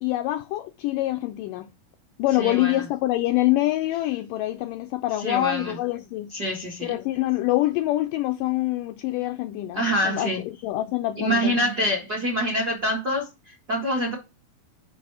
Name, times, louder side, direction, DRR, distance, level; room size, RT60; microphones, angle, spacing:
voice 1, 0.0-1.7 2.2-6.3 6.8-11.6, left 16 dB, 85° left, 1.9 m, -25 dB
voice 2, 2.4-2.8 5.2-5.8 6.3-6.9 9.7-10.4 11.2-14.1, equal, 50° right, 1.2 m, -26 dB
6.2 x 5.3 x 4.6 m
omnidirectional pair, 4.3 m